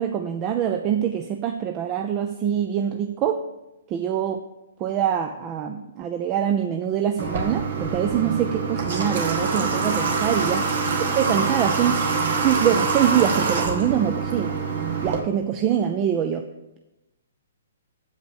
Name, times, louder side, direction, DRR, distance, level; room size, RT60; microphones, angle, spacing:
voice 1, 0.0-3.4 3.9-4.4 4.8-10.6 11.0-12.1 12.4-14.6 15.0-16.4, right 9 dB, 30° right, 6 dB, 0.6 m, -24 dB
Water / Water tap faucet, 7.2-15.2, right 4 dB, 65° right, 1.7 m, -25 dB
8.0 x 5.1 x 7.0 m, 0.95 s
hypercardioid pair, 135°, 0 cm